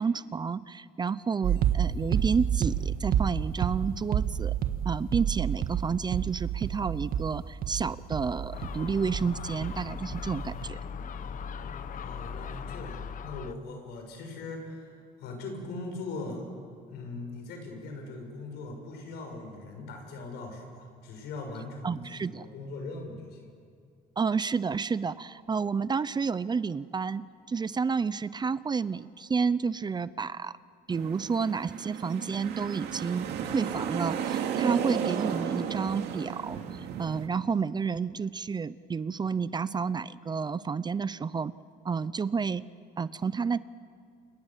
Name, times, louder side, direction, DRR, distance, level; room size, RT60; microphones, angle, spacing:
voice 1, 0.0-4.5 4.8-10.8 21.8-22.5 24.2-27.2 27.5-30.5 30.9-41.5 41.8-42.6 43.0-43.6, right 5 dB, 25° right, 16 dB, 0.6 m, -30 dB
sound 1, 1.4-9.9 10.1-10.7, right 9 dB, 60° right, 1.7 m, -29 dB
Gull seagull, 8.5-13.6, left 6 dB, 50° left, 1.2 m, -38 dB
voice 2, 11.9-14.9 15.2-16.4 16.9-23.5, left 3 dB, 80° left, 4 dB, 6.7 m, -40 dB
sound 2, 30.9-37.3, right 8 dB, 80° right, 2.5 m, -33 dB
28.5 x 27.5 x 7.5 m, 2.2 s
cardioid pair, 110°, 17 cm